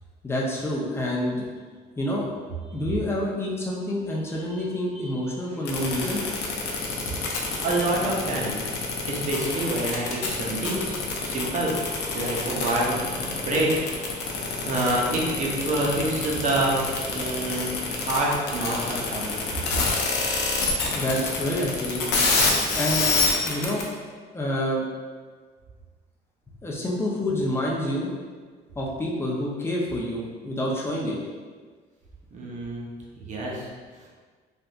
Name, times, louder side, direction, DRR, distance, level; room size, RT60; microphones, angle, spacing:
voice 1, 0.2-1.5 2.0-2.3 2.7-6.2 20.9-22.0 22.7-23.8 24.3-24.8 26.6-28.1 28.8-31.2, left 1 dB, 15° left, -4 dB, 0.6 m, -28 dB
voice 2, 4.9-5.3 5.6-5.9 6.9-7.0 7.6-8.5 9.1-13.8 14.6-16.8 17.1-19.3 32.3-32.9 33.2-33.7, right 1 dB, 45° right, -3 dB, 0.8 m, -27 dB
sound 1, 5.6-23.8, left 4 dB, 85° left, 0.6 m, -26 dB
3.4 x 2.6 x 2.5 m, 1.5 s
cardioid pair, 110°, 17 cm